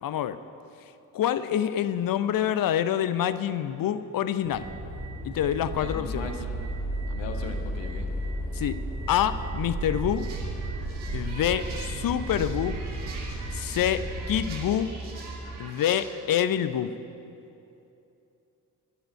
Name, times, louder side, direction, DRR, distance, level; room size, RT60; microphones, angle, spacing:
voice 1, 0.0-0.4 1.1-4.7 5.2-6.3 8.5-8.8 9.1-10.3 11.1-12.8 13.5-14.9 15.6-16.9, left 10 dB, 45° left, 13 dB, 0.7 m, -26 dB
sound 1, 4.4-14.5, right 1 dB, 90° right, 4.7 m, -34 dB
voice 2, 5.8-6.7 7.1-8.1, left 4 dB, 60° left, 3 dB, 1.8 m, -39 dB
sound 2, 6.1-15.6, right 2 dB, 5° right, 2.5 m, -39 dB
sound 3, 10.1-16.0, right 3 dB, 70° right, 2.7 m, -44 dB
11.5 x 11.0 x 9.4 m, 2.8 s
figure-of-eight pair, 45°, 50 cm